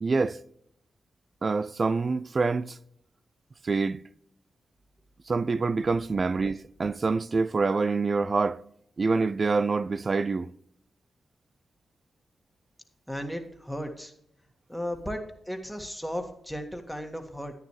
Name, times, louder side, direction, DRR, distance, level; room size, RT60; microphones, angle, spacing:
voice 1, 0.0-0.4 1.4-2.8 3.6-4.0 5.3-8.6 9.0-10.5, right 4 dB, 50° right, 0.4 m, -26 dB
voice 2, 13.1-14.1 14.7-17.5, equal, ahead, 1.8 m, -35 dB
10.5 x 9.2 x 3.2 m
cardioid pair, 55°, 0 cm